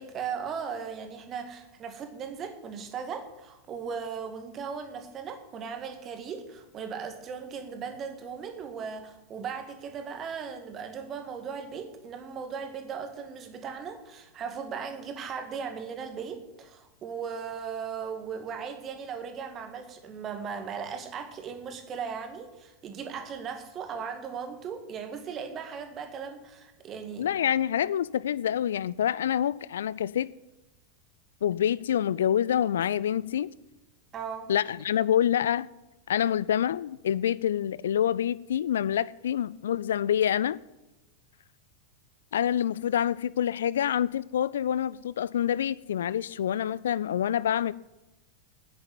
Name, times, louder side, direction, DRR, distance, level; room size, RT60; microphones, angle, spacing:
voice 1, 0.0-27.3 34.1-34.5, right 6 dB, 30° right, 2.1 m, -37 dB
voice 2, 27.2-30.3 31.4-33.5 34.5-35.7 36.1-40.6 42.3-47.7, left 10 dB, 60° left, 0.3 m, -27 dB
9.7 x 9.5 x 9.2 m
figure-of-eight pair, 90°, 0 cm